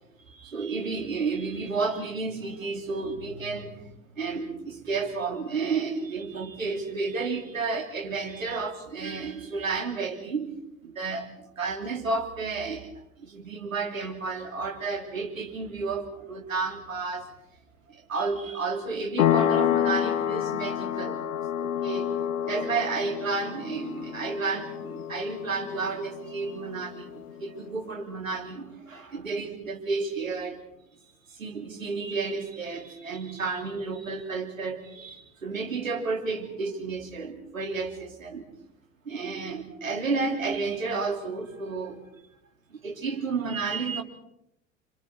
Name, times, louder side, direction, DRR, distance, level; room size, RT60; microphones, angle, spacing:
voice 1, 0.3-3.8 4.2-10.5 10.8-11.3 11.6-12.9 13.2-17.3 17.9-21.2 21.6-22.1 22.5-30.6 31.4-38.5 39.0-42.0 42.8-44.0, right 4 dB, 85° right, 3 dB, 3.3 m, -31 dB
sound 1, 19.2-27.5, left 10 dB, 75° left, 1.5 m, -29 dB
28.0 x 26.5 x 4.6 m, 0.79 s
figure-of-eight pair, 75°, 39 cm